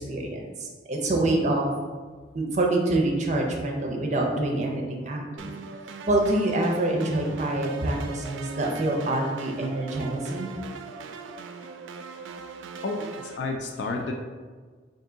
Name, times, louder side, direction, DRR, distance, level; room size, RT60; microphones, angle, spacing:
voice 1, 0.0-1.7 2.3-5.5 6.1-10.6, right 2 dB, 40° right, 0 dB, 0.6 m, -26 dB
sound 1, 5.4-13.4, right 5 dB, 90° right, 0.3 m, -40 dB
voice 2, 12.8-14.1, left 3 dB, 70° left, 3 dB, 0.4 m, -31 dB
3.5 x 2.7 x 3.8 m, 1.5 s
head